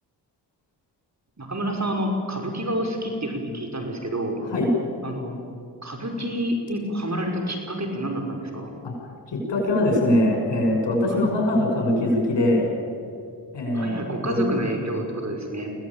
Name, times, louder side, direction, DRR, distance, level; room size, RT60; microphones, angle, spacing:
voice 1, 1.4-4.4 5.0-5.3 5.8-8.7 11.0-11.2 13.7-15.7, equal, 40° right, 3 dB, 5.4 m, -28 dB
voice 2, 9.3-12.7 13.5-13.9 14.2-14.4, left 1 dB, 75° left, 1 dB, 7.0 m, -22 dB
23.5 x 17.0 x 8.9 m, 2.3 s
cardioid pair, 45°, 43 cm